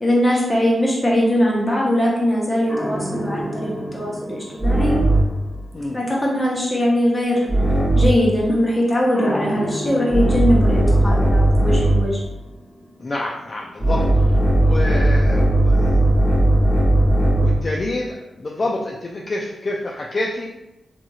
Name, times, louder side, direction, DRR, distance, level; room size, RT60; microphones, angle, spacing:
voice 1, 0.0-5.0 5.9-7.5 7.9-12.2, equal, 25° left, -4 dB, 0.9 m, -20 dB
sound 1, 2.7-5.4 7.5-8.3 9.2-12.1 13.8-17.7, right 1 dB, 5° left, 0.8 m, -18 dB
voice 2, 13.0-14.1 14.5-15.9 16.9-20.5, left 2 dB, 45° left, -2 dB, 0.3 m, -28 dB
2.9 x 2.6 x 2.3 m, 0.95 s
cardioid pair, 70°, 0 cm